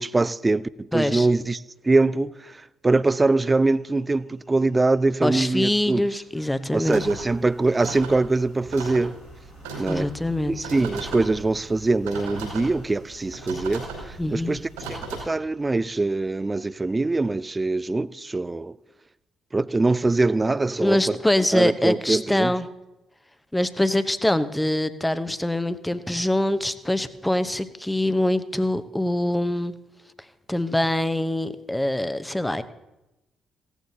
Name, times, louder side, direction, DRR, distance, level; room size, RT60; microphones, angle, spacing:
voice 1, 0.0-1.6 1.8-2.6 2.8-6.0 6.7-9.2 9.8-10.1 10.5-14.6 14.9-18.7 19.5-21.2 21.5-22.5, right 3 dB, 25° right, 0.4 m, -23 dB
voice 2, 0.9-1.3 5.2-7.0 9.9-10.5 14.2-14.6 20.8-22.7 23.5-29.8 30.5-32.6, left 1 dB, 10° left, 0.9 m, -24 dB
sound 1, 3.0-17.6, left 3 dB, 35° left, 1.9 m, -53 dB
sound 2, 6.8-15.2, right 3 dB, 85° right, 4.8 m, -37 dB
16.5 x 14.5 x 2.8 m
hypercardioid pair, 45°, 0 cm